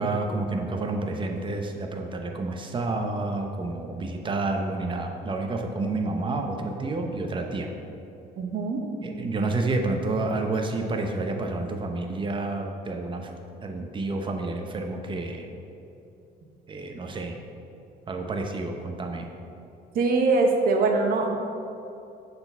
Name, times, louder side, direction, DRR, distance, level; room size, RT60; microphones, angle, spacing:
voice 1, 0.0-7.7 9.0-13.3 13.6-15.5 16.7-17.3 18.1-19.3, right 2 dB, 30° right, 3 dB, 0.8 m, -29 dB
voice 2, 8.4-8.8 19.9-21.4, right 3 dB, 60° right, 2 dB, 1.0 m, -22 dB
6.7 x 4.1 x 5.4 m, 2.7 s
cardioid pair, 110°, 17 cm